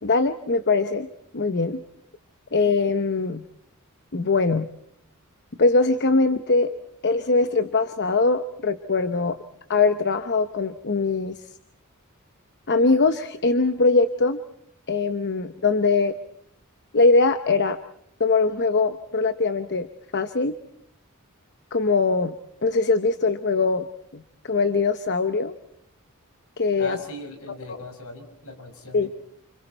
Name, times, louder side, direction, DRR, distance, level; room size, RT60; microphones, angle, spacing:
voice 1, 0.0-1.1 1.3-1.8 2.5-3.4 4.1-4.7 5.6-9.4 9.7-11.4 12.7-14.4 14.9-16.1 16.9-17.8 18.2-19.9 20.1-20.5 21.7-22.3 22.6-23.9 24.1-25.5 26.6-27.0 27.7-27.8 28.9-29.1, left 3 dB, 50° left, 9 dB, 0.9 m, -22 dB
voice 2, 26.8-29.1, left 1 dB, 70° left, 5 dB, 5.8 m, -39 dB
29.5 x 27.5 x 4.5 m, 0.71 s
head